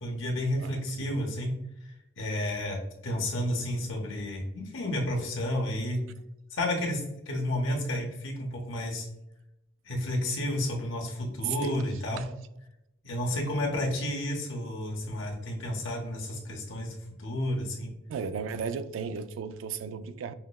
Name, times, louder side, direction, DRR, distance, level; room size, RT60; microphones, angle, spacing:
voice 1, 0.0-1.5 1.8-2.8 3.0-6.0 6.5-9.1 9.8-12.2 13.0-17.9, left 1 dB, 80° left, 0.9 m, -31 dB
voice 2, 0.6-1.5 11.4-12.3 18.1-20.3, right 6 dB, 85° right, 0.3 m, -36 dB
5.6 x 2.0 x 2.2 m
head